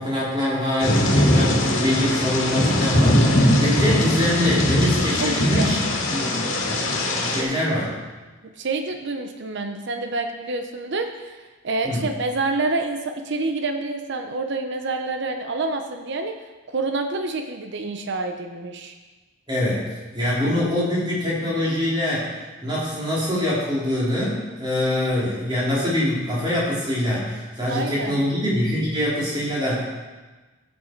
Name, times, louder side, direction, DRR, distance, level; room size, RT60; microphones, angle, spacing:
voice 1, 0.0-5.8 6.1-6.5 7.3-7.9 11.8-12.1 19.5-22.3 22.6-29.8, left 1 dB, 25° right, -6 dB, 3.4 m, -24 dB
Thunder / Rain, 0.8-7.4, left 1 dB, 85° left, 1.9 m, -20 dB
voice 2, 5.2-5.7 7.4-7.5 8.6-11.4 11.6-16.4 16.7-18.9 27.7-28.2, right 3 dB, 60° right, 5 dB, 0.7 m, -27 dB
12.0 x 8.1 x 4.5 m, 1.3 s
head